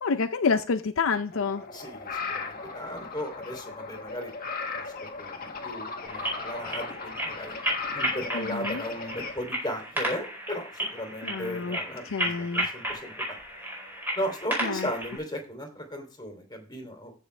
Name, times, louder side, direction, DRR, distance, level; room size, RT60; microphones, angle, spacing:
voice 1, 0.0-1.6 8.3-8.8 11.2-11.8 12.0-12.7 14.6-14.9, left 5 dB, 75° left, 0.6 m, -28 dB
sound 1, 1.3-9.3, left 4 dB, 45° left, 1.7 m, -37 dB
voice 2, 1.7-4.3 4.7-4.8 5.2-7.5 7.9-13.4 14.2-17.1, equal, 20° left, 3.1 m, -36 dB
sound 2, 6.1-15.2, equal, 10° right, 5.0 m, -33 dB
15.0 x 6.3 x 3.3 m
head